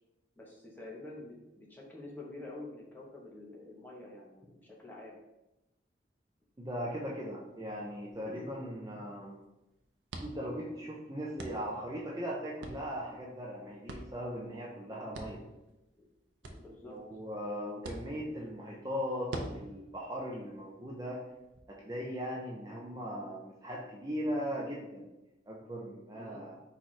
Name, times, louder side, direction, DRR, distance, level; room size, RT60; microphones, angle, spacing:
voice 1, 0.4-5.2 8.3-8.5 16.4-17.0 26.1-26.4, left 2 dB, 10° left, -4 dB, 0.8 m, -48 dB
voice 2, 6.6-9.4 10.2-15.4 16.8-21.2 21.7-25.1 25.5-26.5, equal, 20° right, -3 dB, 0.4 m, -39 dB
sound 1, 7.5-21.6, right 2 dB, 85° right, 0.6 m, -49 dB
4.5 x 2.4 x 4.1 m, 0.97 s
head